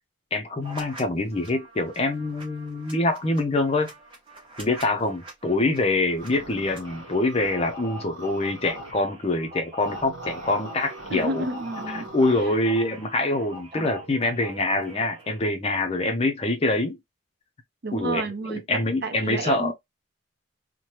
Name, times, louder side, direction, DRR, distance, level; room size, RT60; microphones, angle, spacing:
voice 1, 0.3-3.9 4.6-11.4 11.9-17.0 17.9-18.2 18.5-19.7, left 2 dB, 30° left, 0.5 m, -25 dB
sound 1, 0.6-1.0 1.3-15.4, equal, 25° right, 1.0 m, -43 dB
sound 2, 6.2-8.9 9.8-12.4, right 1 dB, 65° right, 1.0 m, -41 dB
voice 2, 11.1-12.1 12.4-12.6 13.8-13.9 17.8-19.7, right 2 dB, 50° right, 0.6 m, -31 dB
3.1 x 2.1 x 2.8 m
head